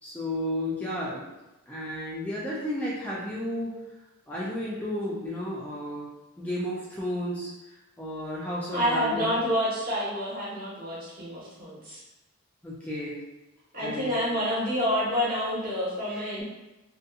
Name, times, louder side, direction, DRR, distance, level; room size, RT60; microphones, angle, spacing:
voice 1, 0.0-1.2 1.7-3.8 4.3-6.1 6.4-7.5 8.0-9.3 12.6-13.2 13.8-14.2 16.1-16.4, left 1 dB, 5° left, -7 dB, 0.3 m, -33 dB
voice 2, 8.7-12.0 13.7-16.4, equal, 40° right, -7 dB, 1.0 m, -28 dB
2.6 x 2.5 x 2.3 m, 1.0 s
head